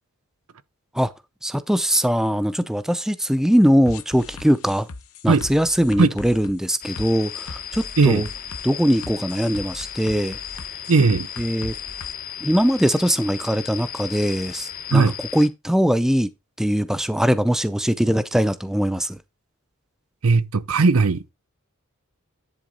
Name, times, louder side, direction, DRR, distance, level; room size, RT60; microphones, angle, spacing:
voice 1, 1.4-4.9 5.2-8.3 8.6-10.4 11.4-11.8 12.4-15.0 15.3-16.3 16.6-19.2, equal, ahead, 0.5 m, -21 dB
sound 1, 3.9-12.1, left 3 dB, 70° left, 0.8 m, -39 dB
sound 2, 6.8-15.5, left 9 dB, 40° left, 0.9 m, -35 dB
voice 2, 10.9-11.3 14.9-15.2 20.2-21.3, right 4 dB, 70° right, 0.7 m, -17 dB
10.5 x 3.8 x 5.2 m
head